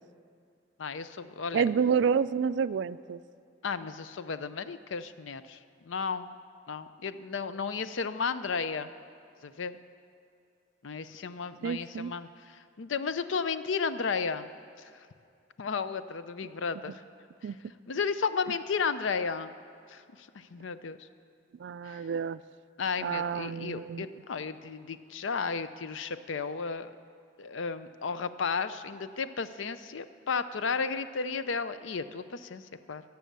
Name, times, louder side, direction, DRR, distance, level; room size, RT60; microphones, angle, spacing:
voice 1, 0.8-1.7 3.6-6.4 6.7-8.9 9.4-9.8 10.8-14.5 14.8-15.1 15.6-17.0 17.4-17.5 17.9-19.5 19.9-21.1 21.8-22.1 22.8-26.9 27.4-33.0, left 5 dB, 85° left, 12 dB, 0.5 m, -34 dB
voice 2, 1.5-3.2 11.6-12.1 17.4-17.6 21.6-22.4 23.0-24.1, right 6 dB, 65° right, 16 dB, 0.3 m, -29 dB
16.5 x 6.9 x 6.7 m, 2.5 s
head